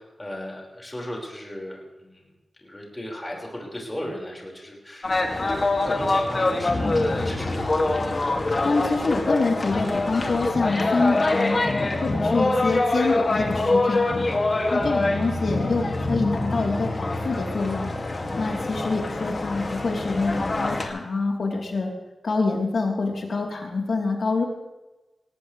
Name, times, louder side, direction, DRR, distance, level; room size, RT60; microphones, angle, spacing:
voice 1, 0.0-2.2 2.6-5.6 5.8-7.7 11.8-12.0 14.4-14.7, left 1 dB, 15° left, -2 dB, 5.1 m, -37 dB
sound 1, 5.0-20.9, left 2 dB, 40° left, 2.3 m, -24 dB
voice 2, 8.6-11.6 12.0-14.3 14.7-17.9 18.4-21.9 22.2-24.4, left 3 dB, 70° left, 0 dB, 3.5 m, -26 dB
19.5 x 18.0 x 3.3 m, 1.1 s
wide cardioid pair, 105°, 0 cm